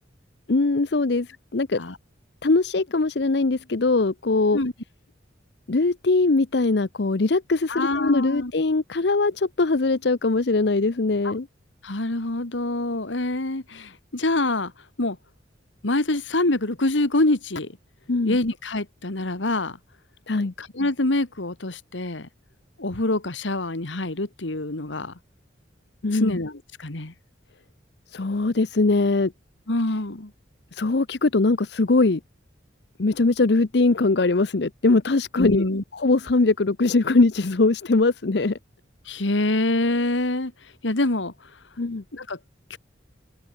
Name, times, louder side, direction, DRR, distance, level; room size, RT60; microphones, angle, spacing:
voice 1, 0.5-1.8 2.4-4.6 5.7-11.5 18.1-18.4 20.3-20.5 26.0-26.4 28.1-29.3 30.7-32.2 33.0-35.6 35.9-38.6 41.8-42.0, left 3 dB, 60° left, 0.7 m, -21 dB
voice 2, 7.7-8.5 11.8-14.7 15.0-15.2 15.8-17.7 18.2-19.8 20.6-22.3 22.8-25.1 26.2-26.5 26.8-27.1 29.7-30.3 35.4-35.8 39.1-40.5 40.8-41.3 42.1-42.4 42.7-42.8, left 2 dB, 85° left, 2.0 m, -25 dB
head